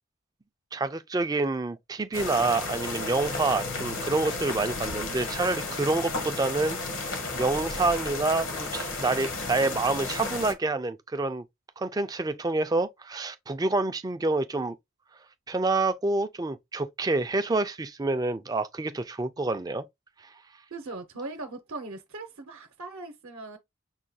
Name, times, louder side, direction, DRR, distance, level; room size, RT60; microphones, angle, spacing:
voice 1, 0.7-11.4 11.8-14.8 15.5-19.8 20.2-20.3, right 3 dB, 15° right, 0.3 m, -28 dB
sound 1, 2.1-10.5, left 3 dB, 70° left, 1.0 m, -33 dB
voice 2, 20.7-23.6, right 3 dB, 70° right, 0.7 m, -39 dB
6.2 x 2.3 x 2.7 m
head